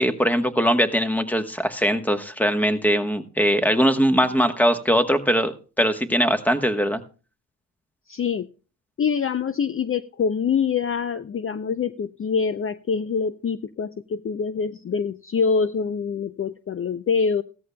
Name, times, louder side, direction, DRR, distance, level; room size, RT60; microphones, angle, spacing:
voice 1, 0.0-7.0, equal, 5° left, 9 dB, 1.2 m, -21 dB
voice 2, 8.1-8.5 9.0-17.4, left 6 dB, 40° left, 12 dB, 0.5 m, -25 dB
16.0 x 13.5 x 2.2 m, 0.36 s
cardioid pair, 75°, 35 cm